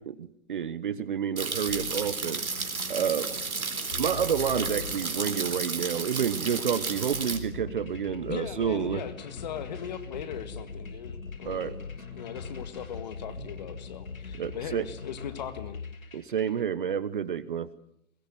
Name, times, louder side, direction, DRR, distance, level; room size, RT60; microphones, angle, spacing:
voice 1, 0.2-2.4 2.9-3.3 4.0-9.0 11.5-11.7 14.4-14.8 16.1-17.7, right 8 dB, 40° right, 16 dB, 1.0 m, -29 dB
sound 1, 1.4-7.4, right 4 dB, 85° right, 4.0 m, -33 dB
sound 2, 1.7-16.6, left 4 dB, 75° left, 6.9 m, -42 dB
voice 2, 8.3-11.9 12.1-16.2, left 9 dB, 30° left, 10 dB, 1.7 m, -39 dB
21.5 x 20.5 x 9.0 m, 0.73 s
hypercardioid pair, 155°, 42 cm